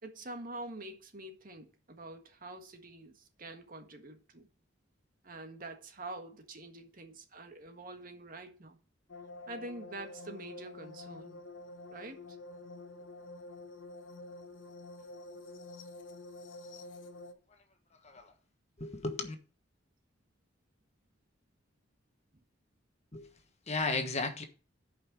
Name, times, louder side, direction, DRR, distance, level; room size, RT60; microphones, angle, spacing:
voice 1, 0.0-4.5 5.2-8.8 9.5-11.4 11.9-12.2, right 2 dB, 45° right, 1.6 m, -46 dB
sound 1, 9.1-17.3, left 2 dB, 80° left, 1.2 m, -48 dB
voice 2, 18.0-18.3 18.8-19.3 23.1-23.3 23.7-24.4, left 3 dB, 35° left, 1.2 m, -34 dB
10.0 x 5.5 x 6.1 m
head